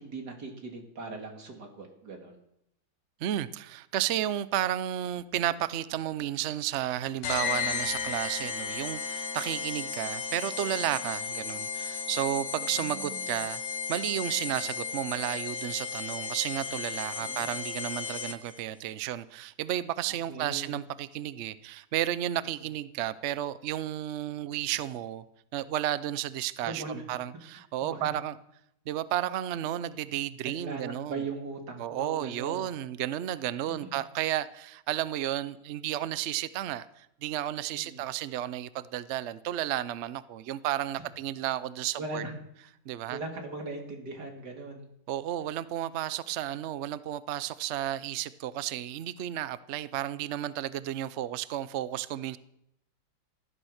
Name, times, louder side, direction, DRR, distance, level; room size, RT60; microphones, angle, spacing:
voice 1, 0.0-2.4 12.7-13.4 17.2-17.6 20.1-20.8 26.6-27.1 27.8-28.2 30.4-32.8 33.7-34.0 37.7-38.0 40.9-41.0 42.0-42.4 43.1-44.9, right 3 dB, 60° right, 3.0 m, -40 dB
voice 2, 3.2-13.6 13.9-25.2 25.5-28.3 28.9-31.2 31.8-42.2 42.9-43.2 45.1-52.4, right 12 dB, 80° right, 0.6 m, -32 dB
sound 1, 7.2-18.6, left 6 dB, 65° left, 1.8 m, -34 dB
15.0 x 11.5 x 6.5 m
omnidirectional pair, 2.0 m